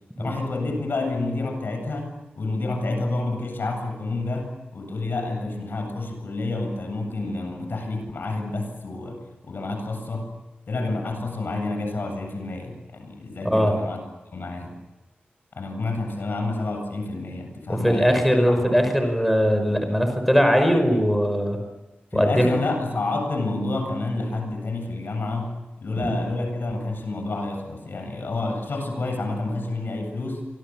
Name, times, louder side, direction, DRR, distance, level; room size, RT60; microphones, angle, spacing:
voice 1, 0.2-10.3 10.7-14.0 14.3-14.7 15.6-18.8 22.1-30.4, left 2 dB, 70° left, 5 dB, 8.0 m, -29 dB
voice 2, 13.4-13.8 17.7-21.6 22.1-22.5 26.0-26.1, equal, ahead, 6 dB, 5.4 m, -20 dB
28.5 x 25.0 x 7.6 m, 1.0 s
wide cardioid pair, 125°, 4 cm